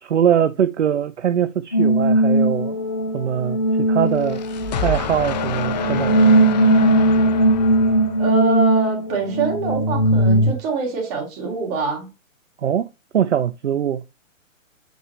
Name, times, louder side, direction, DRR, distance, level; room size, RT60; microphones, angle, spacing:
voice 1, 0.0-2.8 3.1-4.4 4.8-6.1 12.6-12.8 13.1-14.0, right 9 dB, 60° right, 0.6 m, -22 dB
sound 1, 1.7-10.5, right 1 dB, 15° left, 0.4 m, -19 dB
sound 2, 4.0-8.6, left 6 dB, 30° left, 0.8 m, -27 dB
voice 2, 8.2-12.1, right 5 dB, 30° right, 3.0 m, -25 dB
7.7 x 5.0 x 3.0 m
figure-of-eight pair, 125°, 40 cm